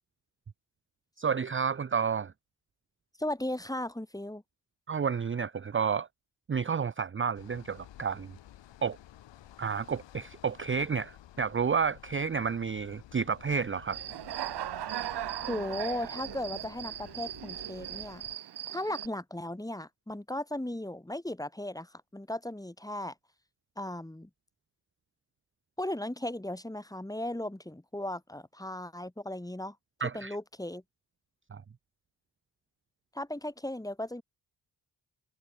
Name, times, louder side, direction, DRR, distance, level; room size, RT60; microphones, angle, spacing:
voice 1, 1.2-2.3 4.9-6.1 6.5-8.3 8.8-9.0 9.6-14.0 30.0-30.4 31.5-31.6, right 6 dB, 30° right, 0.7 m, -30 dB
voice 2, 3.2-4.4 15.5-18.2 18.7-23.1 23.8-24.3 25.8-29.8 30.1-30.8 33.1-34.2, left 1 dB, 10° left, 2.7 m, -36 dB
sound 1, 7.3-18.4, left 13 dB, 90° left, 2.0 m, -53 dB
Human voice / Cricket, 13.9-19.1, right 11 dB, 65° right, 1.0 m, -38 dB
cardioid pair, 60°, 43 cm